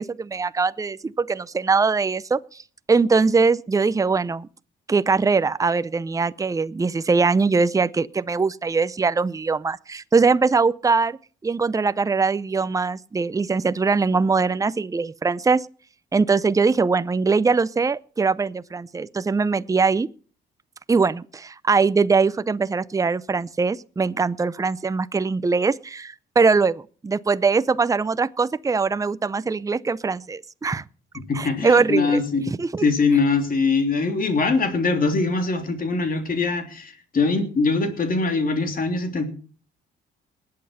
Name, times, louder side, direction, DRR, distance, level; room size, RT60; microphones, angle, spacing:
voice 1, 0.0-2.4 2.9-4.5 4.9-11.2 11.4-15.7 16.1-20.1 20.9-30.8 31.3-32.2 32.6-32.8, right 4 dB, 15° right, 0.6 m, -21 dB
voice 2, 31.3-32.5 32.8-39.3, left 4 dB, 45° left, 3.3 m, -22 dB
20.0 x 8.6 x 5.6 m
cardioid pair, 90°, 20 cm